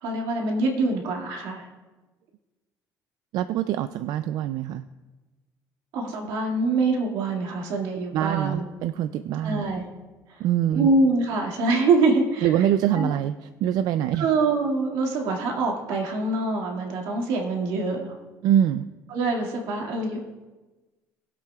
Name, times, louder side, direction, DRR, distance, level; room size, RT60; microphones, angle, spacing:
voice 1, 0.0-1.7 5.9-8.6 9.4-9.9 10.7-12.6 12.9-13.1 14.2-18.2 19.1-20.3, right 3 dB, 90° right, 0 dB, 2.0 m, -24 dB
voice 2, 3.3-4.9 7.9-9.6 10.4-10.9 12.4-13.3 13.6-14.3 18.4-18.9, right 11 dB, 65° right, 11 dB, 0.4 m, -24 dB
20.0 x 8.2 x 2.3 m, 1.2 s
cardioid pair, 145°, 7 cm